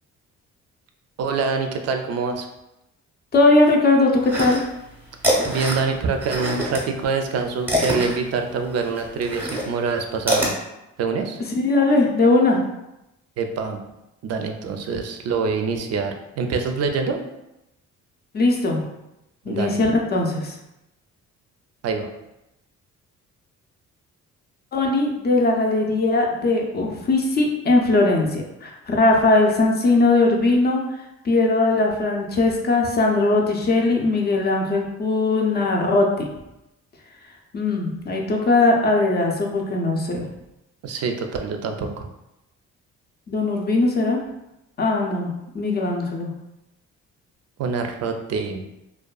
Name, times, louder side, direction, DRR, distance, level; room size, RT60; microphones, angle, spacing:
voice 1, 1.2-2.5 5.5-10.6 11.0-11.4 13.4-13.8 14.2-17.2 19.5-19.7 21.8-22.1 40.8-42.1 47.6-48.6, right 5 dB, 55° right, 5 dB, 0.4 m, -25 dB
voice 2, 3.3-4.6 11.6-12.6 18.3-18.8 19.5-20.5 24.7-30.8 31.2-36.3 37.5-40.3 43.3-44.2 44.8-46.3, left 2 dB, 35° left, 1 dB, 0.5 m, -19 dB
sound 1, 4.2-4.9 5.1-6.8 7.1-10.5, equal, 5° right, 0.8 m, -24 dB
2.5 x 2.3 x 2.3 m, 0.90 s
cardioid pair, 90°, 30 cm